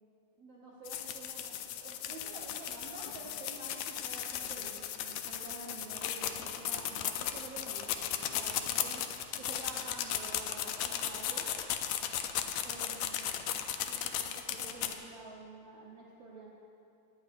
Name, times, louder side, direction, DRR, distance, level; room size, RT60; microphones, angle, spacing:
voice 1, 0.4-4.7 5.0-9.1 9.4-11.5 12.6-13.6 13.9-16.5, right 2 dB, 60° right, -5 dB, 1.7 m, -49 dB
sound 1, 0.9-14.9, left 10 dB, 80° left, 1.6 m, -36 dB
19.5 x 9.5 x 2.6 m, 2.5 s
omnidirectional pair, 3.9 m